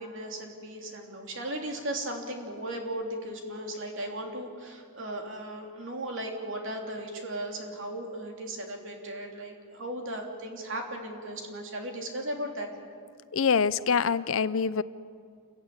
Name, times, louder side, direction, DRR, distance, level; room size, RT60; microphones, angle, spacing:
voice 1, 0.0-12.7, right 1 dB, 60° right, 2 dB, 3.2 m, -36 dB
voice 2, 13.3-14.8, left 6 dB, 65° left, 16 dB, 0.6 m, -25 dB
28.0 x 15.5 x 9.6 m, 2.2 s
head